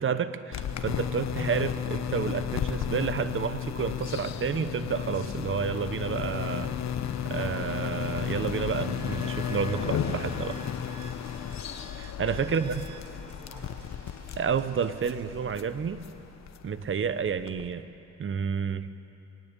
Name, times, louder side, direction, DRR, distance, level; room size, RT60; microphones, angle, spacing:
voice 1, 0.0-6.8 7.3-10.6 12.0-12.8 14.4-16.0 16.6-17.9 18.2-18.9, right 6 dB, 45° right, 12 dB, 1.0 m, -30 dB
sound 1, 0.5-17.7, left 9 dB, 60° left, 1.3 m, -34 dB
sound 2, 6.6-13.0, right 5 dB, 90° right, 1.1 m, -50 dB
sound 3, 8.2-15.4, right 2 dB, 70° right, 6.7 m, -58 dB
voice 2, 10.7-11.2 12.4-14.0, equal, 15° right, -1 dB, 6.0 m, -49 dB
23.0 x 18.0 x 8.2 m, 2.9 s
cardioid pair, 90°, 30 cm